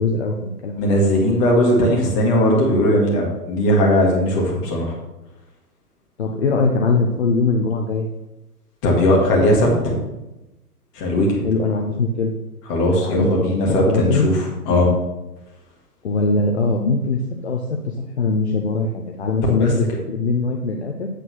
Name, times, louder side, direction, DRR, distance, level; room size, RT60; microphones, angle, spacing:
voice 1, 0.0-0.8 6.2-8.1 11.4-12.3 13.0-14.3 16.0-21.1, left 3 dB, 45° left, 1 dB, 0.8 m, -21 dB
voice 2, 0.8-4.9 8.8-10.0 10.9-11.5 12.7-14.9 19.5-19.7, left 1 dB, 20° left, -2 dB, 1.6 m, -18 dB
8.3 x 4.0 x 6.2 m, 0.99 s
figure-of-eight pair, 135°, 47 cm